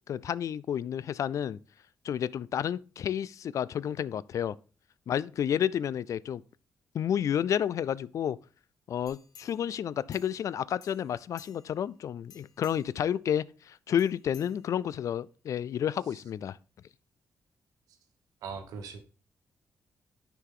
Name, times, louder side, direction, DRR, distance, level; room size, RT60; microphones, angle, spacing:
voice 1, 0.1-1.6 2.0-4.6 5.1-6.4 6.9-8.4 8.9-16.6, left 9 dB, 65° left, 0.3 m, -30 dB
sound 1, 9.1-10.5 10.8-11.9 12.2-13.0 14.0-15.1 15.6-15.7, left 6 dB, 85° left, 1.0 m, -56 dB
voice 2, 18.4-19.0, right 5 dB, 90° right, 1.2 m, -40 dB
9.8 x 4.8 x 3.7 m
cardioid pair, 70°, 6 cm